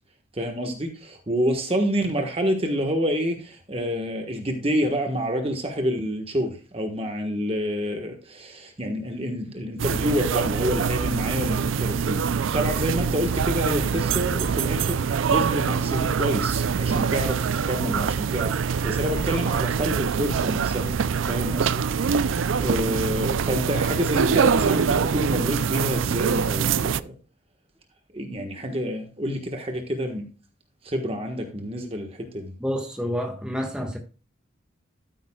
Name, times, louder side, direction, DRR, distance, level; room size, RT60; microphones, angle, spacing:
voice 1, 0.3-12.2 12.5-20.9 21.2-27.1 28.1-30.3 30.8-32.5, equal, 30° right, 1.4 m, -28 dB
sound 1, 9.8-27.0, right 6 dB, 75° right, 0.4 m, -24 dB
voice 2, 32.6-34.0, equal, 5° right, 1.5 m, -28 dB
13.0 x 9.3 x 2.3 m
head